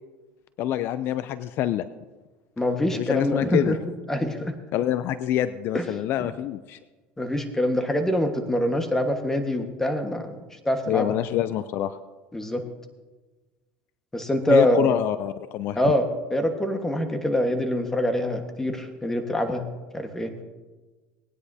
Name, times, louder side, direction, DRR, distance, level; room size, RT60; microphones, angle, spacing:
voice 1, 0.6-1.9 2.9-3.8 4.7-6.8 10.9-12.0 14.5-15.9, left 12 dB, 55° left, 14 dB, 0.4 m, -26 dB
voice 2, 2.6-3.8 4.1-4.5 5.7-5.9 6.2-6.3 7.2-10.4 10.6-11.1 12.3-12.6 14.1-15.0 15.7-19.6 19.9-20.3, left 1 dB, 10° left, 5 dB, 1.4 m, -24 dB
19.0 x 10.0 x 2.8 m, 1.3 s
supercardioid pair, 105°, 5 cm